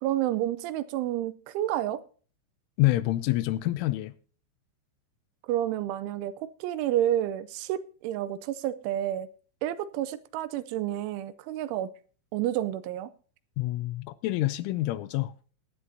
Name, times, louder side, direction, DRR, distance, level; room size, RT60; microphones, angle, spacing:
voice 1, 0.0-2.0 5.5-9.3 9.6-11.9 12.3-13.1, right 12 dB, 80° right, 3.0 m, -30 dB
voice 2, 2.8-4.1 13.6-15.3, left 16 dB, 80° left, 3.1 m, -27 dB
17.5 x 11.5 x 2.7 m
omnidirectional pair, 5.7 m